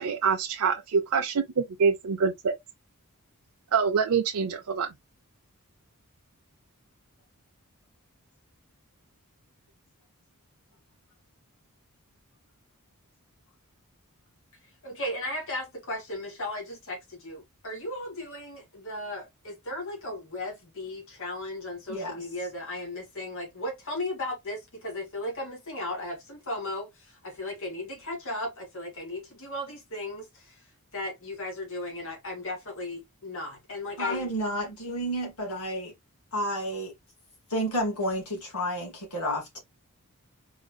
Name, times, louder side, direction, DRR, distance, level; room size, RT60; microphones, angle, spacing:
voice 1, 0.0-2.5 3.7-4.9, right 5 dB, 75° right, 0.5 m, -25 dB
voice 2, 14.8-30.6 30.9-34.3, left 1 dB, 60° left, 2.1 m, -36 dB
voice 3, 21.9-22.2 34.0-35.9 36.3-36.9 37.5-39.6, equal, 90° left, 2.4 m, -31 dB
4.0 x 3.7 x 2.2 m
head